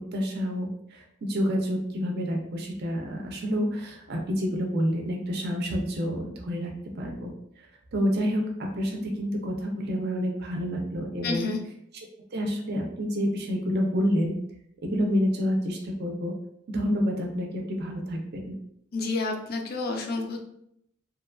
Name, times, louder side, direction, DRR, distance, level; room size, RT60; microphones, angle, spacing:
voice 1, 0.1-7.7 7.9-11.5 12.3-14.3 14.8-16.3 16.7-18.5, equal, 50° right, 1 dB, 0.5 m, -28 dB
voice 2, 11.2-11.6 18.9-20.4, left 3 dB, 45° left, 3 dB, 0.4 m, -29 dB
2.9 x 2.2 x 2.4 m, 0.74 s
head